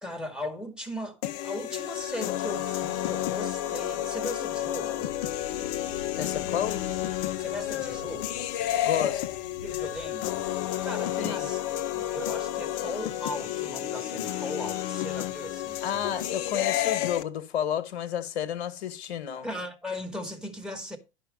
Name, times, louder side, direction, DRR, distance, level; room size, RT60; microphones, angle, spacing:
voice 1, 0.0-5.1 7.4-8.4 9.6-10.3 10.8-11.6 11.9-16.2 19.4-21.0, left 1 dB, ahead, 2.0 m, -38 dB
sound 1, 1.2-17.2, left 13 dB, 45° left, 0.8 m, -31 dB
sound 2, 5.0-10.8, left 3 dB, 80° left, 1.0 m, -47 dB
voice 2, 6.2-6.8 8.8-9.2 11.2-11.5 15.8-19.5, left 9 dB, 65° left, 1.5 m, -31 dB
11.0 x 5.7 x 5.1 m
figure-of-eight pair, 90°, 34 cm